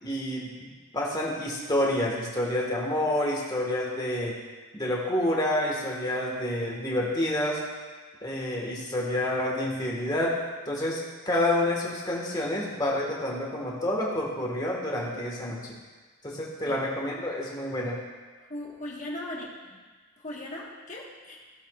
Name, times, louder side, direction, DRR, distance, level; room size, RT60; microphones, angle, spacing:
voice 1, 0.0-4.4 4.7-7.6 8.2-15.7 16.2-18.0, left 1 dB, 20° left, -3 dB, 1.6 m, -28 dB
voice 2, 18.5-19.8 20.2-21.4, left 1 dB, 35° left, -2 dB, 1.5 m, -38 dB
16.5 x 7.1 x 2.4 m, 1.4 s
head